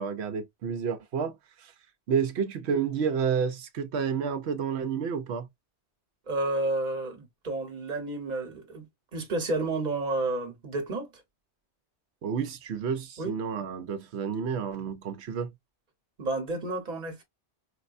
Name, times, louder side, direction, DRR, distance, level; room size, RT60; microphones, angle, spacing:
voice 1, 0.0-1.7 2.1-5.5 12.2-15.5, right 6 dB, 70° right, 0.9 m, -30 dB
voice 2, 6.3-8.9 9.1-11.1 13.2-13.3 16.2-17.2, right 2 dB, 40° right, 1.2 m, -31 dB
4.7 x 2.1 x 2.5 m
omnidirectional pair, 1.2 m